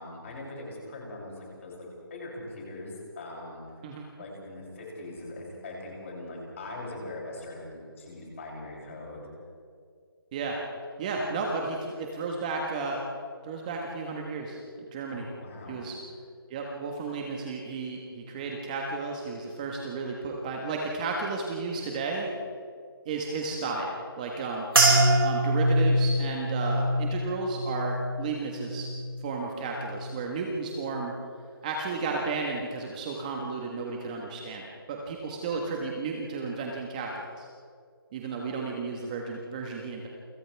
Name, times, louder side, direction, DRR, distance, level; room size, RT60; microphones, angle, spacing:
voice 1, 0.0-3.9 4.2-9.3 15.1-15.8, left 2 dB, 35° left, -3 dB, 7.6 m, -41 dB
voice 2, 11.0-13.0 13.4-14.6 14.9-15.3 15.7-15.9 16.5-22.3 23.0-24.7 25.2-28.9 29.2-31.1 31.6-37.5 38.1-40.1, right 4 dB, 20° right, 0 dB, 1.5 m, -33 dB
sound 1, 24.7-29.3 29.6-30.2 30.8-31.1, right 1 dB, 70° right, 6.2 m, -25 dB
29.0 x 25.5 x 3.5 m, 2.2 s
hypercardioid pair, 170°, 13 cm